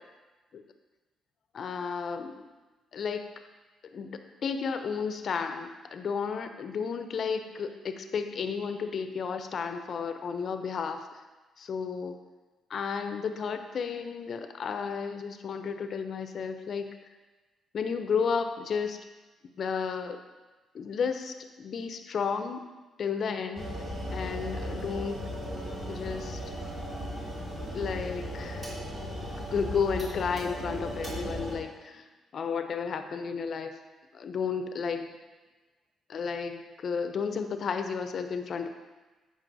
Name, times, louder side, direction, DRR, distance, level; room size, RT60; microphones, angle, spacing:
voice 1, 1.5-2.5 2.9-3.2 3.9-11.2 11.6-12.2 12.7-16.9 17.7-19.0 19.6-20.2 20.7-22.7 23.0-23.7 24.1-25.2 25.9-26.4 27.7-28.7 29.5-32.1 32.3-33.8 34.1-35.2 36.1-38.7, left 6 dB, 55° left, 8 dB, 0.5 m, -32 dB
sound 1, 23.5-31.6, equal, 40° right, 2.0 m, -36 dB
7.4 x 5.1 x 2.6 m, 1.2 s
cardioid pair, 90°, 0 cm